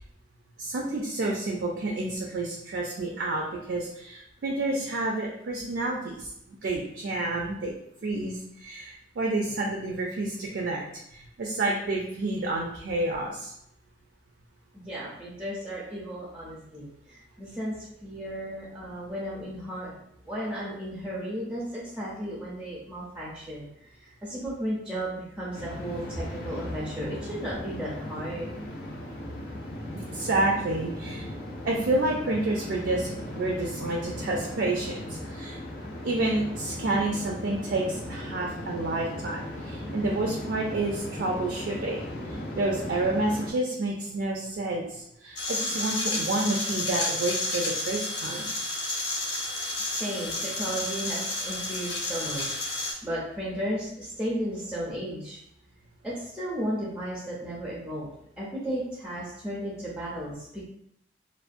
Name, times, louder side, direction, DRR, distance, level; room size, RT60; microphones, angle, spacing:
voice 1, 0.6-7.7 8.0-10.8 11.1-13.5 29.9-31.3 31.6-35.6 36.0-42.0 42.5-48.5, right 2 dB, 65° right, -1 dB, 0.4 m, -29 dB
voice 2, 14.7-19.9 20.3-23.7 24.0-28.6 49.8-55.4 56.0-58.1 58.4-60.6, equal, 5° right, -5 dB, 0.4 m, -34 dB
sound 1, 25.5-43.5, left 1 dB, 60° left, 0.5 m, -37 dB
sound 2, 45.4-52.9, left 2 dB, 85° left, 0.9 m, -31 dB
2.4 x 2.1 x 2.4 m, 0.75 s
head